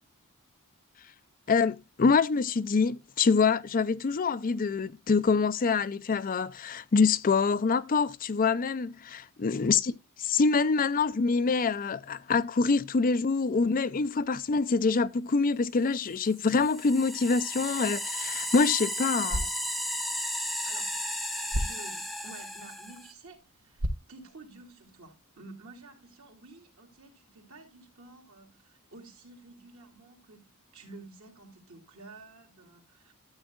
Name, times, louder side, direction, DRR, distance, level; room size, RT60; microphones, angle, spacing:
voice 1, 1.5-9.9 10.2-19.5, left 4 dB, 40° left, 0.4 m, -25 dB
sound 1, 16.3-23.1, equal, ahead, 0.8 m, -34 dB
sound 2, 19.1-25.1, equal, 80° right, 1.1 m, -38 dB
voice 2, 20.6-21.1 21.6-33.1, right 3 dB, 65° right, 2.8 m, -51 dB
13.0 x 8.0 x 2.4 m
head